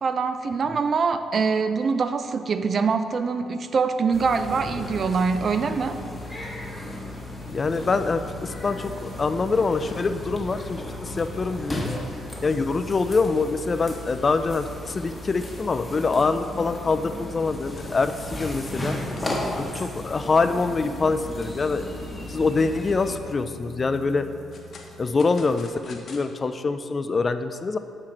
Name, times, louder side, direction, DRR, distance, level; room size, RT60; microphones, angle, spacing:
voice 1, 0.0-6.0, right 5 dB, 45° right, 10 dB, 0.4 m, -24 dB
sound 1, 4.1-23.2, left 1 dB, 15° left, 1.1 m, -35 dB
voice 2, 7.5-11.9 12.4-19.0 19.5-21.9 22.3-24.3 25.0-27.8, left 4 dB, 35° left, 10 dB, 0.3 m, -25 dB
sound 2, 7.6-25.7, left 1 dB, 75° right, 0.9 m, -48 dB
sound 3, 16.3-19.8 20.3-20.4 20.8-20.9 21.4-21.8 22.4-23.0 24.1-26.2, left 3 dB, 55° left, 0.8 m, -48 dB
7.5 x 4.4 x 3.8 m, 2.2 s
cardioid pair, 90°, 0 cm